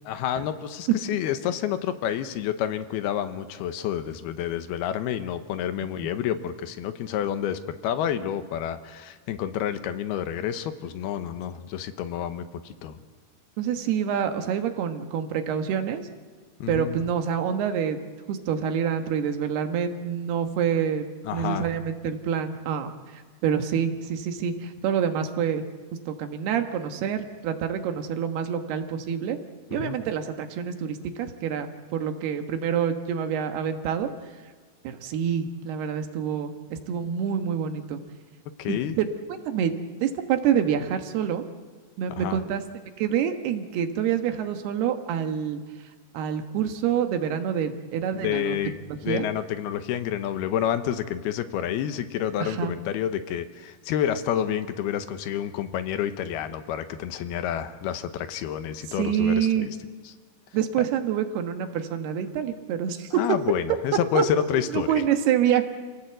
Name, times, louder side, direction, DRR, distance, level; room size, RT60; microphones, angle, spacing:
voice 1, 0.0-13.0 16.6-17.0 21.2-21.8 29.7-30.0 38.6-39.0 42.1-42.4 48.1-48.8 49.0-59.8 60.1-60.2 63.1-65.0, left 10 dB, 85° left, 10 dB, 3.0 m, -29 dB
voice 2, 13.6-16.0 16.7-18.0 18.3-21.0 21.3-25.6 26.1-29.4 29.7-34.1 35.0-38.0 38.7-39.1 39.5-39.7 40.0-41.4 42.0-42.6 43.0-45.6 46.1-48.6 49.1-49.3 52.4-52.7 59.0-59.7 60.5-63.2 64.1-64.2 64.7-65.6, right 8 dB, 90° right, 6 dB, 3.4 m, -27 dB
27.5 x 17.5 x 8.0 m, 1.5 s
omnidirectional pair, 4.5 m